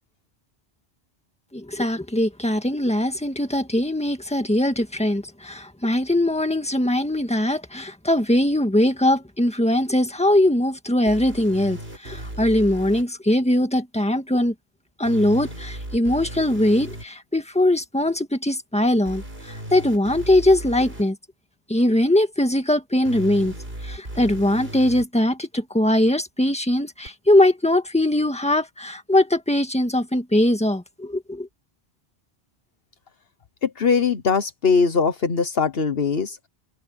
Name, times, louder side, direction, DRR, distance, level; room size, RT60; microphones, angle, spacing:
voice 1, 1.5-14.5 15.0-21.2 21.7-23.5 23.8-31.5, left 1 dB, 5° left, 1.8 m, -21 dB
sound 1, 11.1-13.0 15.1-17.1 19.1-21.0 23.1-25.1 27.1-27.2, right 1 dB, 65° right, 6.4 m, -36 dB
voice 2, 33.6-36.4, left 5 dB, 65° left, 1.3 m, -21 dB
omnidirectional pair, 1.1 m